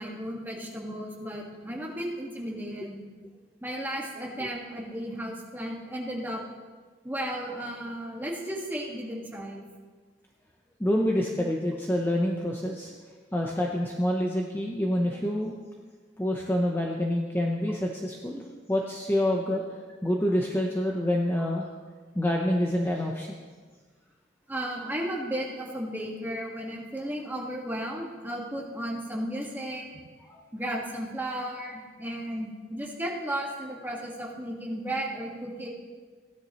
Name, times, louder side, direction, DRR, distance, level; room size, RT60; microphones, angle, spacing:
voice 1, 0.0-3.0 3.6-6.4 7.0-9.6 24.5-29.9 30.5-35.7, right 1 dB, 10° right, -2 dB, 1.6 m, -34 dB
voice 2, 10.8-12.9 13.3-15.5 16.2-18.4 18.7-19.6 20.0-21.7 22.1-23.3 30.2-30.4, left 1 dB, 10° left, -1 dB, 0.7 m, -27 dB
15.5 x 10.5 x 3.0 m, 1.5 s
head